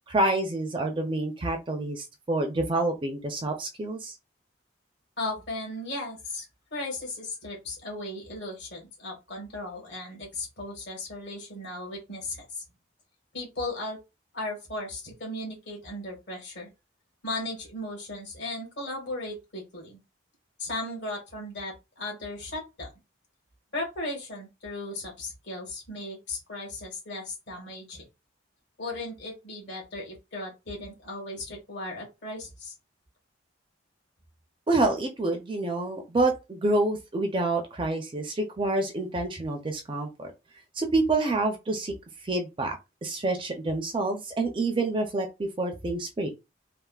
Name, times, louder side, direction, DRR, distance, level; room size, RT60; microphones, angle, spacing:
voice 1, 0.1-4.1 34.7-40.3 40.8-41.9 42.2-42.8 43.0-46.3, right 2 dB, 25° right, 0.4 m, -27 dB
voice 2, 5.2-12.6 13.3-14.0 14.3-16.7 17.2-20.0 20.6-22.9 23.7-28.0 28.8-32.7, left 2 dB, 60° left, 1.5 m, -36 dB
3.3 x 2.1 x 2.3 m
head